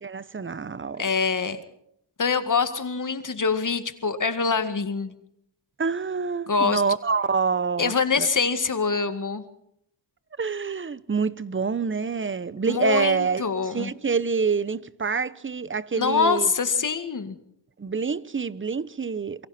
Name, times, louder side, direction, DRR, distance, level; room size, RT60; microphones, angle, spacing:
voice 1, 0.0-1.0 5.8-8.3 10.4-13.4 13.7-16.5 17.8-19.5, right 5 dB, 30° right, 0.9 m, -26 dB
voice 2, 1.0-1.6 2.2-5.1 6.5-6.8 7.8-9.4 12.7-13.9 16.0-17.4, left 5 dB, 45° left, 2.0 m, -24 dB
28.5 x 22.5 x 4.3 m
cardioid pair, 80°, 43 cm